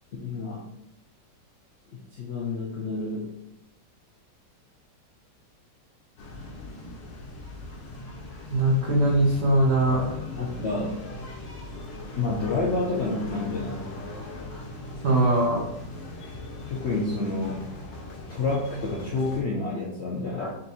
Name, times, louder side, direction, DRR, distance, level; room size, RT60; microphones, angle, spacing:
voice 1, 0.2-0.6 1.9-3.3 10.4-11.0 12.2-13.9 16.7-17.7 18.3-20.6, left 3 dB, 65° left, -4 dB, 0.6 m, -29 dB
sound 1, 6.2-19.4, left 2 dB, 90° left, 1.6 m, -39 dB
voice 2, 8.5-10.0 15.0-15.6, right 1 dB, 50° right, -4 dB, 0.8 m, -21 dB
4.1 x 2.6 x 4.1 m, 0.84 s
omnidirectional pair, 1.9 m